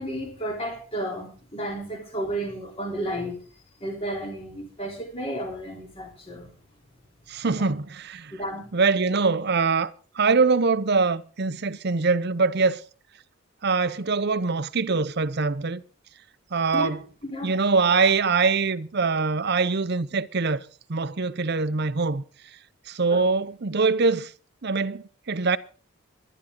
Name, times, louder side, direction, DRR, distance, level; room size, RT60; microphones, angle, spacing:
voice 1, 0.0-3.4 3.8-6.5 7.5-7.7 8.4-8.7 16.7-16.9 17.2-17.5 23.1-23.2, right 1 dB, 25° left, 3.6 m, -32 dB
voice 2, 7.3-8.3 8.7-9.9 10.1-12.8 13.6-15.8 16.5-17.0 17.4-22.2 22.9-24.3 24.6-25.6, right 4 dB, 50° right, 0.7 m, -23 dB
19.5 x 12.0 x 3.8 m
head